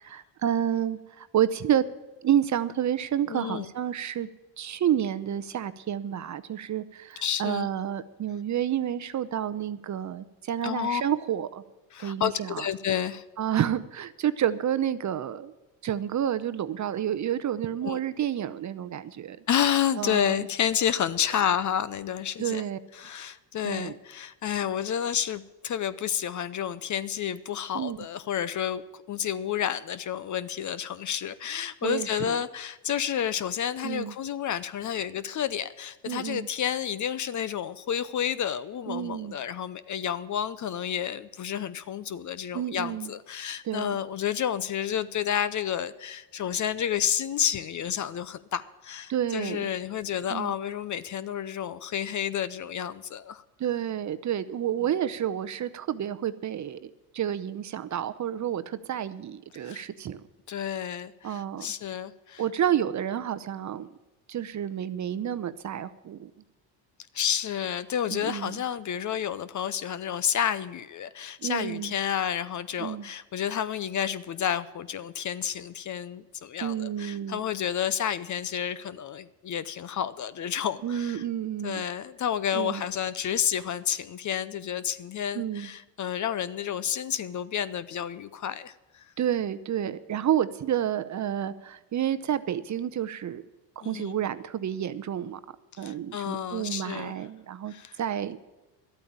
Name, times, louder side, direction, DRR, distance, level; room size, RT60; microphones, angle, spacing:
voice 1, 0.0-1.8 2.2-4.3 4.6-11.6 12.0-12.6 13.4-15.5 15.8-19.4 20.0-20.4 21.3-21.4 22.4-22.8 23.6-24.0 27.7-28.0 31.8-32.4 33.8-34.1 36.1-36.5 38.9-39.4 42.5-43.1 43.6-44.0 49.1-49.7 50.3-50.5 53.6-60.2 61.2-61.7 62.4-63.9 64.3-66.3 68.1-68.6 71.4-71.9 72.8-73.1 76.6-77.4 80.8-81.8 82.5-82.8 85.3-85.7 89.2-93.4 93.8-95.4 95.8-98.4, right 10 dB, 35° right, 13 dB, 0.7 m, -30 dB
voice 2, 3.3-3.7 7.2-7.7 10.6-11.0 11.9-13.2 17.8-18.0 19.5-22.6 22.9-53.4 59.6-59.8 60.5-62.4 67.1-81.2 81.6-89.1 93.8-94.2 95.7-97.1 97.7-98.0, left 9 dB, 40° left, 16 dB, 0.7 m, -30 dB
12.0 x 8.7 x 8.6 m, 1.1 s
supercardioid pair, 85°, 49 cm